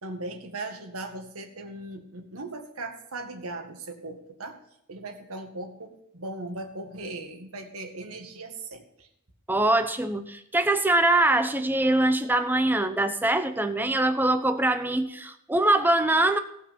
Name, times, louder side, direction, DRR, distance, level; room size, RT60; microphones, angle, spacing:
voice 1, 0.0-4.6 4.9-9.1, right 2 dB, 80° right, 3 dB, 1.9 m, -38 dB
voice 2, 9.5-16.4, right 2 dB, 10° right, 8 dB, 0.8 m, -23 dB
17.5 x 6.0 x 5.3 m, 0.75 s
head